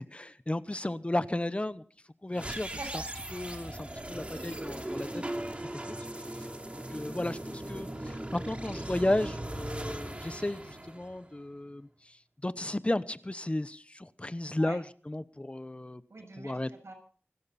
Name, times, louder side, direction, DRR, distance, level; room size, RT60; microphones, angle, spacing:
voice 1, 0.0-1.8 2.2-2.7 3.3-5.2 5.9-6.0 6.9-12.1 12.4-16.0 16.4-16.7, left 1 dB, 25° left, 0.8 m, -34 dB
sound 1, 2.3-11.5, right 1 dB, 25° right, 2.8 m, -39 dB
voice 2, 2.4-3.1 14.6-14.8 16.1-16.9, right 2 dB, 75° right, 7.0 m, -44 dB
26.0 x 12.5 x 4.2 m
wide cardioid pair, 65°, 5 cm